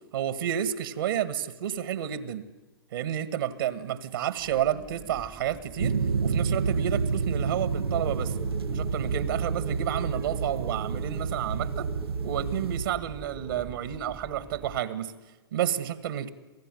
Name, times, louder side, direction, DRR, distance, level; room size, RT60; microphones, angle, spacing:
voice 1, 0.1-2.4 2.9-8.4 8.7-11.9 12.2-15.1 15.5-16.3, right 10 dB, 65° right, 14 dB, 1.7 m, -30 dB
Spooky Wind Howl, 4.4-14.8, right 5 dB, 15° right, 0.9 m, -44 dB
sound 1, 5.8-12.8, right 5 dB, 85° right, 0.8 m, -29 dB
27.5 x 17.0 x 9.3 m, 1.2 s
hypercardioid pair, 120°, 13 cm